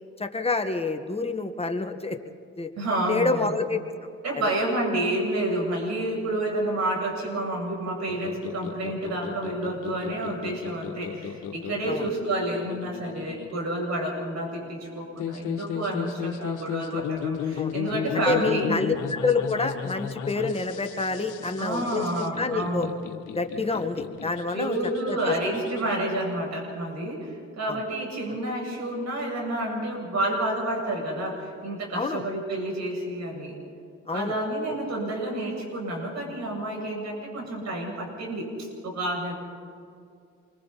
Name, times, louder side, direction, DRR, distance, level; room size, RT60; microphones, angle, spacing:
voice 1, 0.2-2.2 2.6-2.7 3.1-3.8 11.9-12.1 17.6-17.7 18.3-22.9 23.4-24.8 25.1-25.3 27.7-27.8 31.9-32.2 34.1-34.4, left 3 dB, 20° left, 5 dB, 1.6 m, -27 dB
voice 2, 2.8-3.5 4.2-18.8 21.6-22.9 24.5-33.6 34.1-39.3, right 1 dB, 60° right, -1 dB, 7.5 m, -29 dB
sound 1, 8.1-25.8, left 8 dB, 85° left, 1.5 m, -35 dB
28.5 x 24.0 x 4.2 m, 2.4 s
cardioid pair, 90°, 30 cm